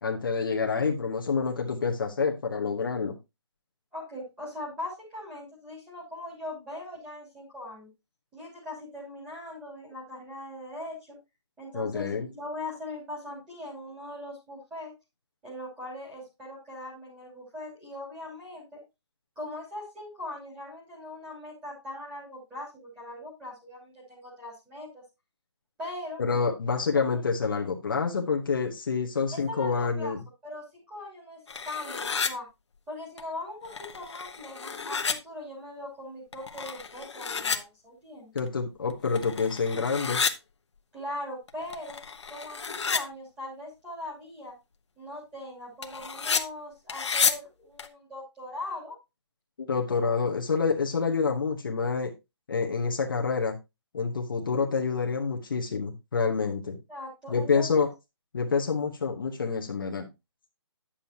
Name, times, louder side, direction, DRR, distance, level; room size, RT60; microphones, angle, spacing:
voice 1, 0.0-3.2 11.7-12.3 26.2-30.2 38.3-40.2 49.6-52.1 52.5-53.6 53.9-56.8 57.3-57.9 58.3-60.1, left 5 dB, 45° left, 1 dB, 1.0 m, -27 dB
voice 2, 3.9-7.9 8.3-11.2 11.6-14.9 15.4-18.8 19.4-25.0 25.8-26.2 27.1-27.2 29.3-30.1 30.4-32.4 32.9-38.4 40.9-42.0 42.3-44.5 45.0-48.9 56.9-57.7, left 1 dB, 5° right, -6 dB, 2.9 m, -40 dB
sound 1, 31.5-32.3 33.2-33.3 33.6-35.1 36.3-37.6 38.4-38.5 38.9-40.3 41.5-43.0 45.8-46.4 46.9-47.3 47.8-47.9, left 5 dB, 70° left, 1.1 m, -30 dB
10.0 x 7.2 x 2.8 m, 0.24 s
hypercardioid pair, 175°, 15 cm